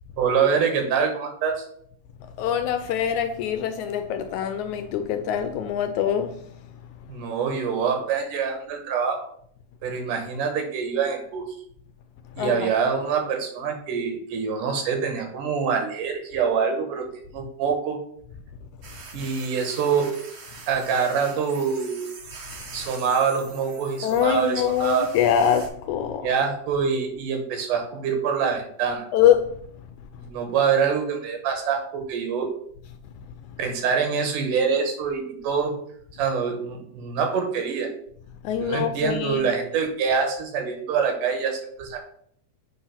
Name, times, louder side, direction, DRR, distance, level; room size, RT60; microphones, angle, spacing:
voice 1, 0.2-1.7 7.1-9.2 9.8-11.4 12.4-17.1 17.3-18.0 19.1-20.1 20.7-22.0 22.7-25.1 26.2-29.1 30.3-32.5 33.6-35.7 36.2-37.9 38.6-42.0, right 6 dB, 75° right, 2.7 m, -25 dB
voice 2, 2.4-6.3 12.4-12.7 24.0-26.3 29.1-29.5 38.4-39.5, left 9 dB, 80° left, 1.8 m, -23 dB
sound 1, 18.8-25.7, right 4 dB, 55° right, 1.5 m, -43 dB
7.8 x 3.8 x 5.7 m
omnidirectional pair, 3.7 m